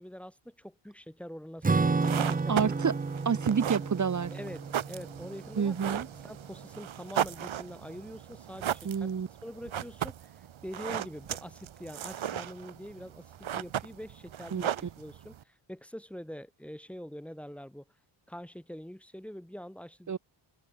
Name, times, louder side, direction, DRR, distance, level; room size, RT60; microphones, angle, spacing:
voice 1, 0.0-2.8 4.3-9.1 9.4-17.8 18.3-20.2, equal, ahead, 4.3 m, -45 dB
Acoustic guitar / Strum, 1.6-6.4, right 4 dB, 15° right, 1.0 m, -31 dB
sound 1, 1.8-15.4, right 10 dB, 65° right, 4.2 m, -37 dB
voice 2, 2.5-2.9 3.3-4.3 5.6-6.1 8.8-9.3 14.5-14.7 20.1-20.2, right 6 dB, 35° right, 2.0 m, -28 dB
open air
cardioid pair, 115°, 50 cm